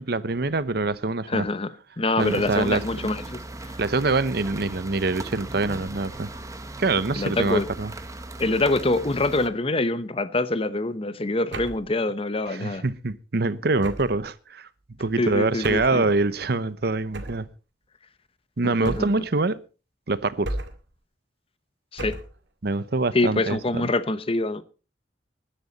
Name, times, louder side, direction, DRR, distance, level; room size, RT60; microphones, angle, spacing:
voice 1, 0.0-1.4 2.2-2.8 3.8-6.3 6.8-7.9 12.5-14.7 15.0-17.5 18.6-19.6 20.1-20.5 22.6-23.6, right 3 dB, 60° right, 0.8 m, -25 dB
voice 2, 1.3-3.7 7.2-7.7 8.4-12.8 15.2-16.0 18.6-19.1 21.9-22.2 23.1-24.6, left 2 dB, 30° left, 0.9 m, -25 dB
sound 1, 2.2-9.5, right 2 dB, 20° right, 1.3 m, -38 dB
sound 2, 11.5-11.9 13.8-14.3 15.6-16.0 17.1-17.5 18.8-19.3 20.4-20.9 22.0-22.4, right 1 dB, 80° right, 2.0 m, -34 dB
20.0 x 10.5 x 4.1 m
head